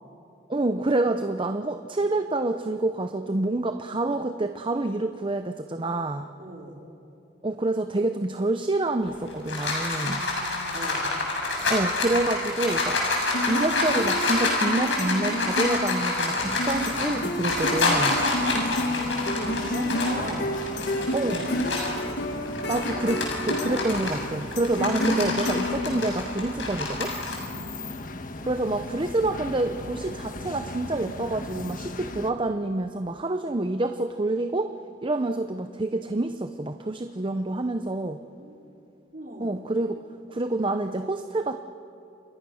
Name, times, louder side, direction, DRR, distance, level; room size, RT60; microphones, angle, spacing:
voice 1, 0.5-6.3 7.4-10.2 11.7-13.0 13.5-18.2 21.1-21.4 22.7-27.1 28.4-34.7 35.0-38.2 39.4-40.0 40.3-41.6, right 2 dB, 30° right, 8 dB, 0.7 m, -27 dB
voice 2, 6.4-6.9 10.0-11.2 19.0-21.7 27.4-27.7 35.3-35.9 38.4-38.8 39.1-39.6, right 1 dB, 50° right, 0 dB, 4.6 m, -40 dB
sound 1, 9.1-22.0 22.5-27.4, left 3 dB, 90° left, 7.1 m, -28 dB
sound 2, 13.3-26.5, left 1 dB, 65° left, 2.0 m, -30 dB
sound 3, 16.4-32.3, left 2 dB, 50° left, 1.4 m, -38 dB
30.0 x 27.5 x 6.4 m, 2.8 s
head